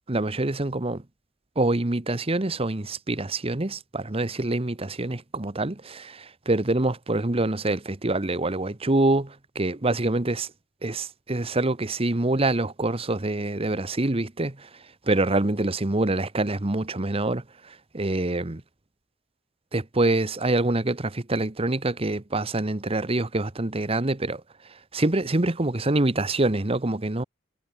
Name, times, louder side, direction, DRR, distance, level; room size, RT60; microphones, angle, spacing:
voice 1, 0.1-1.0 1.6-10.5 10.8-14.7 15.1-18.6 19.7-24.4 24.9-27.2, right 2 dB, 30° right, 1.1 m, -25 dB
head